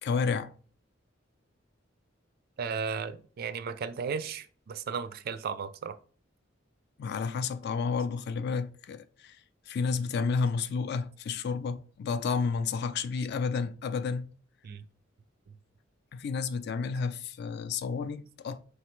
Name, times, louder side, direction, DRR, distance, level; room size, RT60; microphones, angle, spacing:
voice 1, 0.0-0.5 7.0-9.4 9.7-14.3 16.1-18.6, left 5 dB, 55° left, 0.3 m, -31 dB
voice 2, 2.6-6.0 14.6-14.8, right 6 dB, 50° right, 0.3 m, -35 dB
4.4 x 3.2 x 3.0 m
head